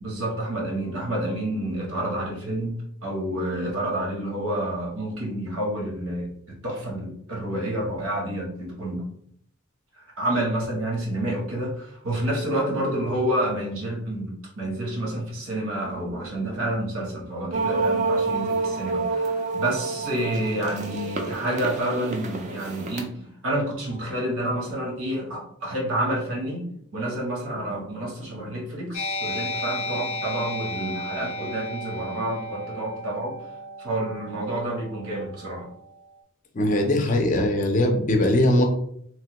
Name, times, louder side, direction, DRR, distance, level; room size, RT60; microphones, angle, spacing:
voice 1, 0.0-6.3 6.6-9.0 10.2-26.7 26.9-33.4 33.8-35.7, right 1 dB, 80° right, -1 dB, 0.9 m, -29 dB
sound 1, 17.5-23.0, right 3 dB, 35° right, 0.4 m, -28 dB
sound 2, 28.9-36.0, left 1 dB, 90° left, 0.5 m, -34 dB
voice 2, 36.5-38.7, left 1 dB, 35° left, 3 dB, 0.4 m, -20 dB
3.1 x 2.1 x 2.9 m, 0.68 s
head